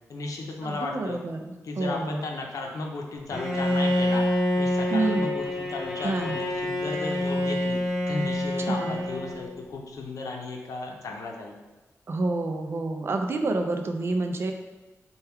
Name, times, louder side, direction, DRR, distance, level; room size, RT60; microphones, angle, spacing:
voice 1, 0.1-1.2 1.6-4.2 4.5-11.5, left 3 dB, 80° left, 1 dB, 0.6 m, -34 dB
voice 2, 0.6-2.2 4.9-5.3 6.0-6.4 8.7-9.0 12.1-14.5, right 2 dB, 45° right, 4 dB, 0.4 m, -28 dB
Bowed string instrument, 3.3-9.6, left 1 dB, 5° right, 0.7 m, -27 dB
4.3 x 2.3 x 3.5 m, 1.2 s
wide cardioid pair, 125°, 6 cm